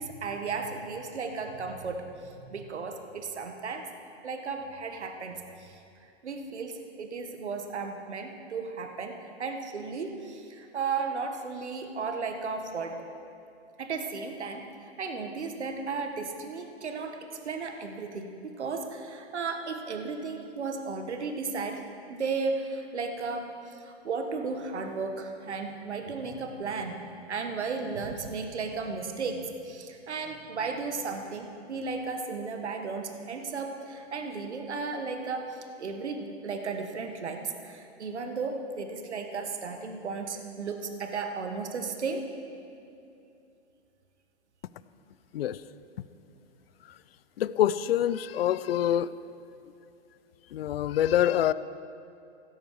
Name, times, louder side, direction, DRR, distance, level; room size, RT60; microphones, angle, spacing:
voice 1, 0.0-3.9 4.2-5.8 6.2-13.0 13.8-14.7 15.0-18.3 18.6-21.8 22.1-26.9 27.3-42.2, right 4 dB, 80° right, 5 dB, 1.5 m, -34 dB
voice 2, 47.4-49.1 50.5-51.5, left 11 dB, 60° left, 16 dB, 0.6 m, -25 dB
16.5 x 13.0 x 4.8 m, 2.6 s
hypercardioid pair, 125°, 34 cm